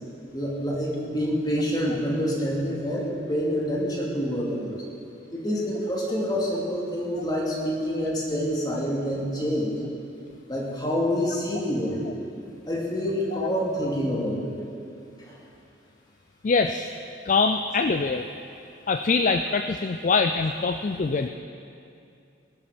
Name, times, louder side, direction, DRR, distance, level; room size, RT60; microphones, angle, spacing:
voice 1, 0.3-4.7 5.3-9.7 10.5-12.0 12.7-14.6 15.3-15.4, equal, 20° left, -4 dB, 2.6 m, -27 dB
voice 2, 16.4-16.9 17.3-18.3 18.9-21.3, left 4 dB, 40° left, 8 dB, 0.4 m, -24 dB
19.0 x 11.5 x 5.1 m, 2.6 s
head